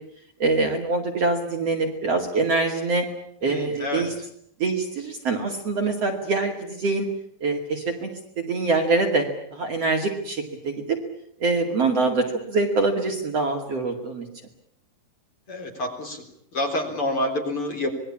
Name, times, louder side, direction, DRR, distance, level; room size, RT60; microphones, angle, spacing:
voice 1, 0.4-3.0 3.4-4.1 4.6-7.1 7.4-8.1 8.4-9.3 9.5-11.0 11.4-14.3, right 3 dB, 45° right, 3 dB, 3.0 m, -24 dB
voice 2, 3.4-4.1 15.5-16.2 16.5-18.0, left 1 dB, 35° left, 3 dB, 4.4 m, -28 dB
26.5 x 21.0 x 8.7 m, 0.68 s
omnidirectional pair, 4.5 m